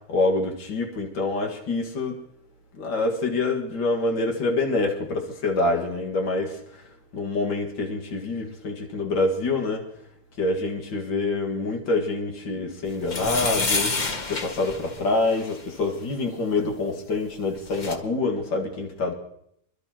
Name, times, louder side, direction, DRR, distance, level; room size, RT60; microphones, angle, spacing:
voice 1, 0.1-2.2 2.8-6.6 7.1-9.8 10.4-14.0 14.3-19.1, left 3 dB, 90° left, 2.6 m, -26 dB
sound 1, 13.0-15.6 17.3-17.4 17.6-18.0, left 3 dB, 35° left, 0.9 m, -28 dB
27.0 x 12.0 x 3.0 m
omnidirectional pair, 2.0 m